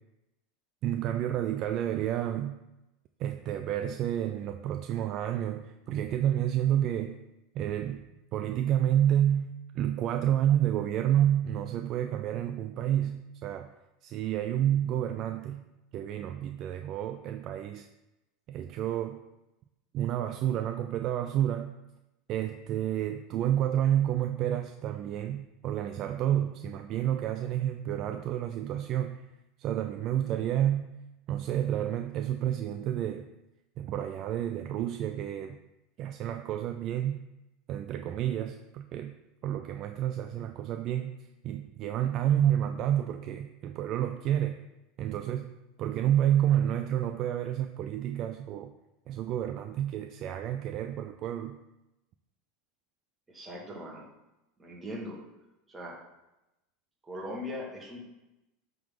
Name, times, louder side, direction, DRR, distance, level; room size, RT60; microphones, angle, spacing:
voice 1, 0.8-2.6 3.2-7.2 7.5-8.1 8.3-13.7 14.0-15.7 15.9-17.9 18.5-19.2 19.9-21.7 22.3-29.3 29.6-30.9 31.3-33.3 33.8-35.6 36.0-37.2 37.7-39.2 39.4-41.1 41.4-44.6 45.0-45.5 45.8-48.7 49.1-51.6, right 11 dB, 45° right, 6 dB, 0.3 m, -29 dB
voice 2, 53.3-54.0 54.6-55.2 55.7-55.9 57.0-58.0, left 1 dB, 15° right, -3 dB, 1.7 m, -39 dB
7.6 x 3.9 x 3.7 m, 0.94 s
supercardioid pair, 135°, 0 cm